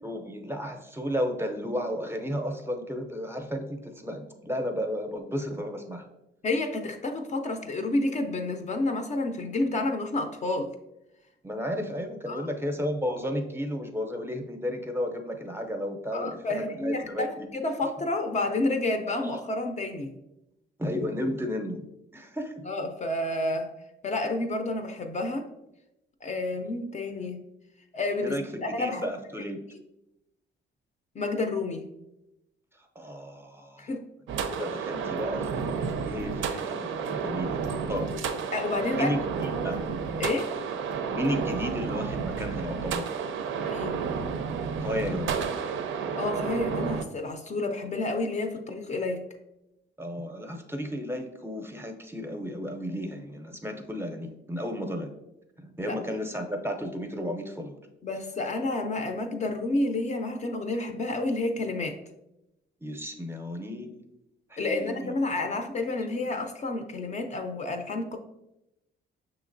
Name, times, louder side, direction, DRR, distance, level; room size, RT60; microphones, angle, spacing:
voice 1, 0.0-6.1 11.4-17.5 20.8-21.9 22.1-22.6 28.2-29.6 33.0-33.9 34.5-37.6 37.9-38.1 38.9-39.8 41.1-43.1 44.8-45.4 50.0-55.1 55.6-57.8 62.8-64.0 64.5-65.1 66.3-66.4, equal, 10° right, 4 dB, 0.6 m, -33 dB
voice 2, 6.4-10.7 12.3-12.5 16.1-20.2 22.7-23.7 24.0-25.5 26.2-27.5 27.9-29.1 31.2-31.9 33.8-34.1 38.5-39.1 40.2-40.5 43.6-44.0 46.0-49.2 55.8-56.0 58.0-62.0 64.6-68.2, left 2 dB, 35° left, 5 dB, 0.5 m, -30 dB
sound 1, 34.3-47.0, right 6 dB, 75° right, 0.4 m, -31 dB
6.0 x 2.9 x 2.5 m, 0.89 s
cardioid pair, 90°, 20 cm